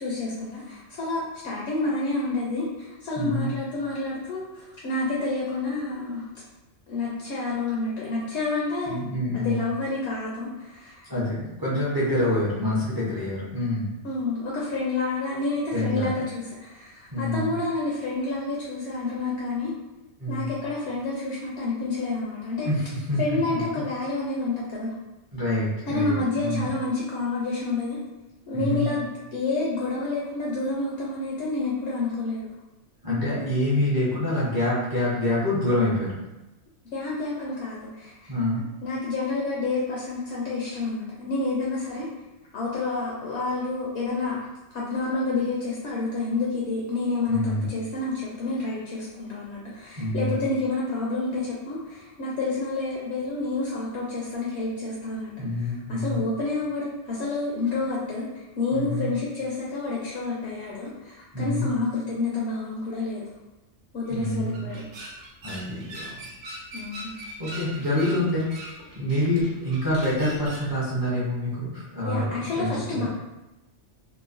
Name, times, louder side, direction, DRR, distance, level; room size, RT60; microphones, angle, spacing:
voice 1, 0.0-6.2 6.9-9.0 9.3-11.1 14.0-19.7 20.3-22.7 23.2-24.9 25.9-28.0 28.5-29.0 29.3-32.5 36.9-38.3 38.8-42.1 42.5-44.5 44.7-55.3 55.9-63.2 63.9-64.8 66.7-67.1 72.0-73.1, left 3 dB, 70° left, -5 dB, 0.8 m, -29 dB
voice 2, 3.2-3.5 8.9-9.6 11.1-13.9 15.7-16.1 17.1-17.5 20.2-20.5 22.6-23.6 25.3-26.7 28.5-28.9 33.0-36.2 38.3-38.6 47.3-47.7 50.0-50.4 55.4-56.2 58.7-59.1 61.3-61.7 64.1-64.7 65.4-66.2 67.4-68.6 68.9-73.1, left 1 dB, 25° right, -9 dB, 0.5 m, -26 dB
sound 1, 64.1-70.7, right 1 dB, 75° right, 1.0 m, -41 dB
3.0 x 2.1 x 2.4 m, 0.99 s
omnidirectional pair, 1.3 m